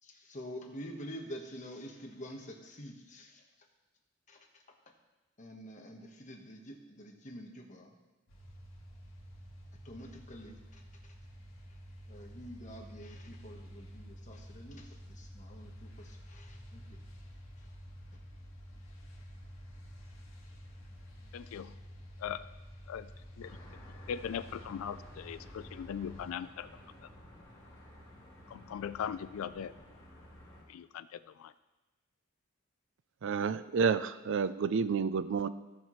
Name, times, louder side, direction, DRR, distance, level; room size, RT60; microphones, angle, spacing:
voice 1, 0.0-3.4 4.3-4.6 5.4-8.0 9.8-11.1 12.1-17.0 17.6-17.7 18.1-18.2, equal, 35° left, 1 dB, 1.2 m, -48 dB
sound 1, 8.3-26.3, equal, 70° left, 1.8 m, -50 dB
voice 2, 21.3-21.8 22.2-22.5 22.9-23.1 23.4-23.6 24.1-27.1 28.5-29.7 30.7-31.5, left 8 dB, 85° left, 13 dB, 0.3 m, -40 dB
sound 2, 23.4-30.6, left 1 dB, 20° left, 2.9 m, -54 dB
voice 3, 33.2-35.5, right 6 dB, 65° right, 14 dB, 0.4 m, -30 dB
16.5 x 5.7 x 3.1 m, 1.1 s
head